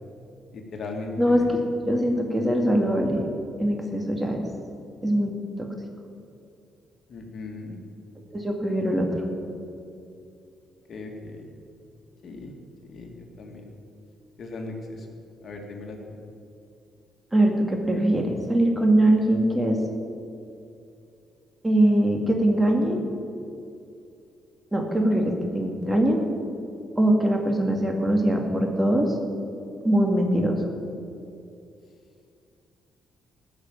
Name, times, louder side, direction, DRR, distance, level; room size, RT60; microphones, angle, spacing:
voice 1, 0.5-1.6 7.1-7.8 10.9-11.5 12.2-12.5 12.9-13.6 14.4-15.1 15.4-16.2, left 3 dB, 55° left, 2 dB, 2.1 m, -37 dB
voice 2, 1.2-3.3 3.6-4.4 5.0-5.3 5.6-5.7 8.3-9.1 17.3-19.8 21.6-23.0 24.7-26.2 27.0-29.1 29.8-30.5, right 1 dB, 15° right, 2 dB, 2.2 m, -22 dB
15.0 x 6.6 x 8.9 m, 2.5 s
cardioid pair, 90°, 0 cm